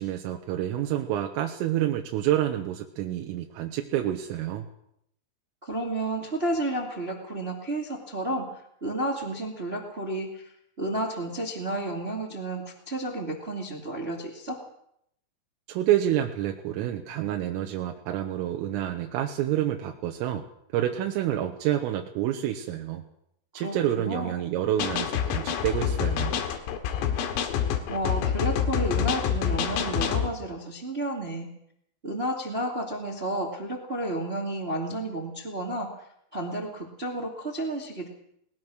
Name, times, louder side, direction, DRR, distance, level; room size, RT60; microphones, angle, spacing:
voice 1, 0.0-4.7 15.7-20.4 20.7-23.1 23.5-26.4, right 12 dB, 80° right, 3 dB, 3.8 m, -28 dB
voice 2, 5.6-8.5 8.8-10.5 10.8-14.6 23.5-24.4 27.9-31.5 32.0-35.9 36.3-38.1, right 1 dB, 50° right, 1 dB, 0.7 m, -31 dB
sound 1, 24.8-30.3, left 8 dB, 90° left, 4.5 m, -27 dB
21.5 x 20.0 x 6.3 m, 0.73 s
omnidirectional pair, 5.9 m